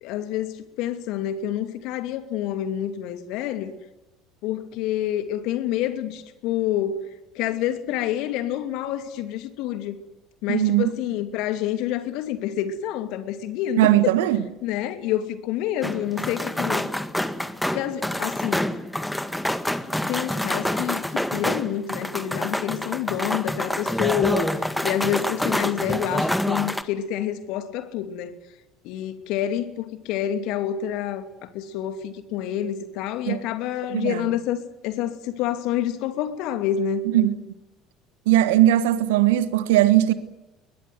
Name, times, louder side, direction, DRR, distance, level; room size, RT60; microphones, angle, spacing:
voice 1, 0.0-3.7 4.4-7.1 7.3-10.0 10.4-14.1 14.6-16.9 17.7-18.7 20.1-28.4 28.8-34.6 34.8-37.1, left 10 dB, 60° left, 2.7 m, -28 dB
voice 2, 10.5-10.9 13.8-14.4 33.2-33.4 33.9-34.2 37.1-37.4 38.3-40.1, right 14 dB, 70° right, 1.4 m, -19 dB
sound 1, 15.8-26.8, left 1 dB, 5° left, 1.8 m, -27 dB
21.5 x 21.0 x 9.6 m
figure-of-eight pair, 65°, 0 cm